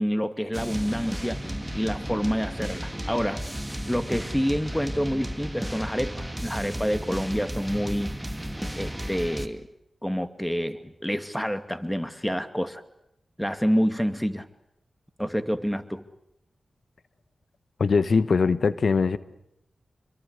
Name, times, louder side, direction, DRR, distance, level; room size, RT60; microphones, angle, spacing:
voice 1, 0.0-1.4 1.7-3.4 3.9-8.1 8.8-9.6 10.0-12.8 13.4-14.5 15.2-16.0, equal, 5° left, 10 dB, 2.4 m, -28 dB
sound 1, 0.5-9.5, equal, 10° right, 2.5 m, -34 dB
voice 2, 17.8-19.2, left 4 dB, 70° left, 15 dB, 1.2 m, -21 dB
27.0 x 23.0 x 8.2 m, 0.78 s
cardioid pair, 40°, 0 cm